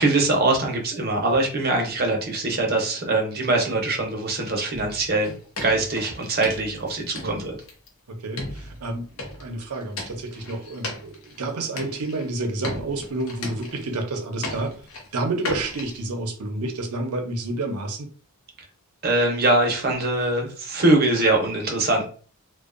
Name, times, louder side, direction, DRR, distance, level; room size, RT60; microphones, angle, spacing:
voice 1, 0.0-5.3 5.6-7.5 19.0-22.1, right 2 dB, 45° right, 0.6 m, -22 dB
sound 1, 4.7-7.9 8.4-11.5 11.8-12.3 12.6-14.2 14.4-16.0, left 2 dB, 75° left, 0.7 m, -36 dB
voice 2, 8.1-14.8 15.1-18.1, right 2 dB, 85° right, 0.6 m, -30 dB
2.6 x 2.2 x 2.4 m
head